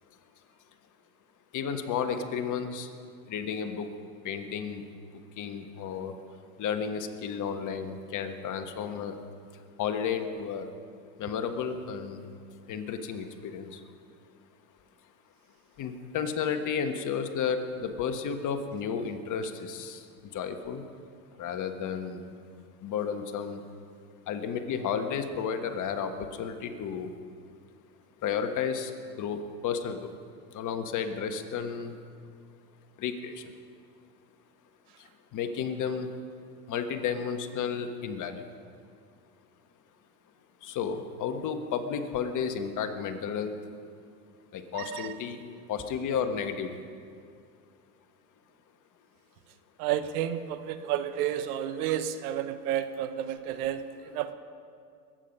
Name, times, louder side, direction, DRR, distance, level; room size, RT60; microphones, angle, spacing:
voice 1, 1.5-2.9 3.3-3.9 4.2-4.8 5.4-6.1 6.6-9.1 9.8-10.7 11.2-12.2 12.7-13.7 15.8-20.0 20.3-20.8 21.4-22.3 22.8-23.6 24.3-27.1 28.2-28.9 29.2-30.1 30.5-31.9 33.0-33.4 35.3-36.1 36.7-38.4 40.6-43.6 44.5-45.4 45.7-46.8, left 7 dB, 40° left, 7 dB, 1.4 m, -32 dB
voice 2, 44.7-45.1 49.8-54.3, right 10 dB, 65° right, 11 dB, 1.0 m, -31 dB
21.5 x 8.9 x 5.5 m, 2.3 s
hypercardioid pair, 95°, 48 cm